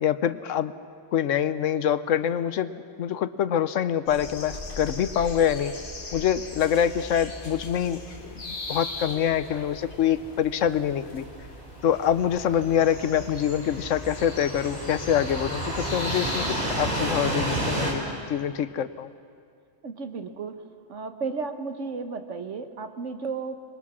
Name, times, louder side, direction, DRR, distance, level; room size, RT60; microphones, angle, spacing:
voice 1, 0.0-0.7 1.1-2.7 3.0-5.7 6.1-8.0 8.2-11.2 11.8-19.1, left 9 dB, 80° left, 13 dB, 1.1 m, -25 dB
sound 1, 4.1-18.0, left 3 dB, 45° left, 1.8 m, -40 dB
sound 2, 4.2-17.9, right 1 dB, 30° right, 4.5 m, -33 dB
voice 2, 19.8-20.6 20.9-23.6, right 4 dB, 75° right, 8 dB, 1.5 m, -33 dB
25.5 x 22.0 x 6.2 m, 2.3 s
omnidirectional pair, 1.3 m